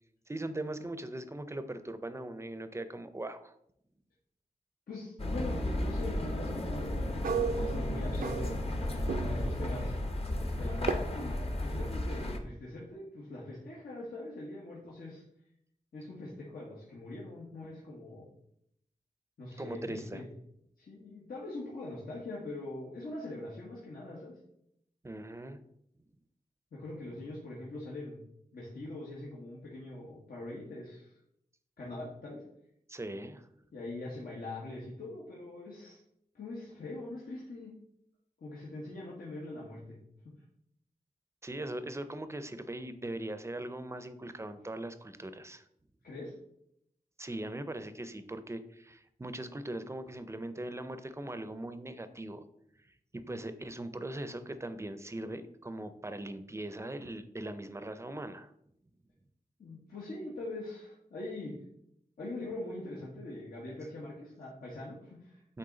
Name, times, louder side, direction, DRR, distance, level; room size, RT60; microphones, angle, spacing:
voice 1, 0.3-3.5 19.6-20.2 25.0-25.6 32.9-33.4 41.4-45.6 47.2-52.4 53.1-58.5 65.5-65.6, right 1 dB, 20° right, 11 dB, 0.5 m, -40 dB
voice 2, 4.9-8.6 9.2-10.0 10.6-15.2 15.9-18.3 19.4-20.3 20.8-24.3 26.7-28.2 28.5-31.2 31.8-32.4 33.7-36.0 36.3-37.7 38.4-40.0 46.0-46.3 59.6-61.5 62.2-65.6, left 2 dB, 80° left, -6 dB, 1.5 m, -42 dB
sound 1, 5.2-12.4, left 1 dB, 40° left, 0.9 m, -34 dB
sound 2, 7.2-8.8 9.1-9.6 10.9-11.0, right 6 dB, 70° right, 0.5 m, -33 dB
8.5 x 3.7 x 3.9 m, 0.74 s
wide cardioid pair, 100°, 15 cm